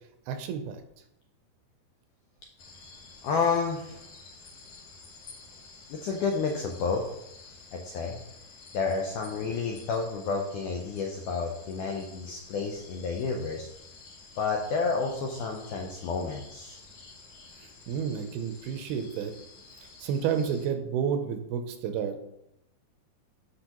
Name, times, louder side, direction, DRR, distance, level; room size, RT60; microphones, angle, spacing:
voice 1, 0.3-0.8 17.9-19.3 20.0-22.3, right 7 dB, 80° right, 7 dB, 2.5 m, -30 dB
sound 1, 2.6-20.7, left 3 dB, 60° left, 2.2 m, -51 dB
voice 2, 3.2-4.1 5.9-7.0 7.5-8.2 8.7-13.7 14.4-16.8, left 4 dB, 80° left, 1 dB, 1.8 m, -30 dB
10.0 x 5.9 x 3.0 m, 0.81 s
omnidirectional pair, 4.5 m